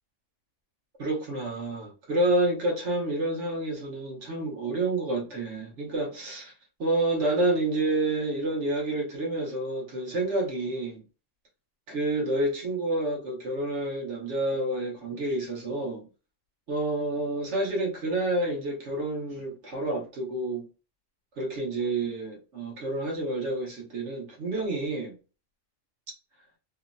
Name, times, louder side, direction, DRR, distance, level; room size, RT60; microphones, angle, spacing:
voice 1, 1.0-6.5 6.8-11.0 11.9-16.1 16.7-20.7 21.4-25.2, right 2 dB, 65° right, 1.2 m, -29 dB
3.1 x 2.0 x 2.5 m
omnidirectional pair, 1.3 m